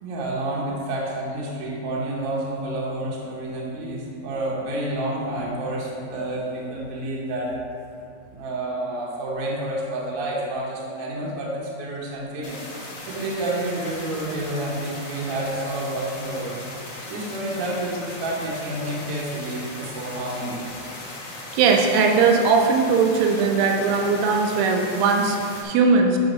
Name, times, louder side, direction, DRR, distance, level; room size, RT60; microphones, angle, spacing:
voice 1, 0.0-7.5 8.3-12.6 13.1-16.6 17.1-20.6, right 1 dB, 60° right, -5 dB, 1.5 m, -29 dB
sound 1, 12.4-25.6, left 2 dB, 50° left, 1.4 m, -38 dB
voice 2, 21.5-26.2, right 4 dB, 80° right, 2 dB, 2.5 m, -19 dB
9.6 x 3.5 x 5.3 m, 2.5 s
omnidirectional pair, 4.2 m